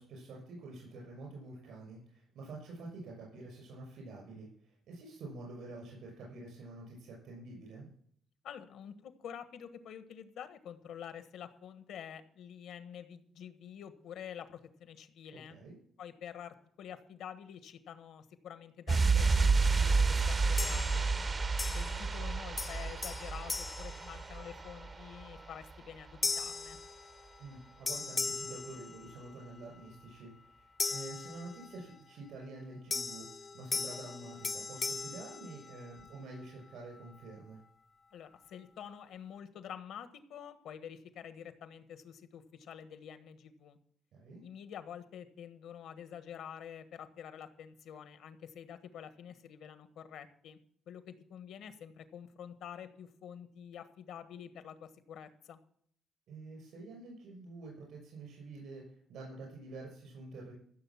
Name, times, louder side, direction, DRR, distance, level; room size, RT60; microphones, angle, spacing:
voice 1, 0.0-7.9 15.3-15.7 27.4-33.2 33.5-37.6 44.1-44.4 56.3-60.5, right 2 dB, 80° right, -1 dB, 6.1 m, -48 dB
voice 2, 8.4-15.6 16.0-21.0 21.7-26.8 38.1-43.8 44.4-50.6 50.9-55.6, left 8 dB, 80° left, 11 dB, 1.3 m, -48 dB
sound 1, 18.9-25.4 25.6-25.8, right 4 dB, 35° right, 0.6 m, -30 dB
sound 2, 20.6-21.2 21.6-22.3 22.6-24.7 25.2-25.5 26.2-27.6 27.9-29.5 30.8-32.0 32.9-36.2, left 4 dB, 35° left, 0.4 m, -39 dB
15.0 x 6.7 x 7.2 m, 0.63 s
cardioid pair, 90°, 0 cm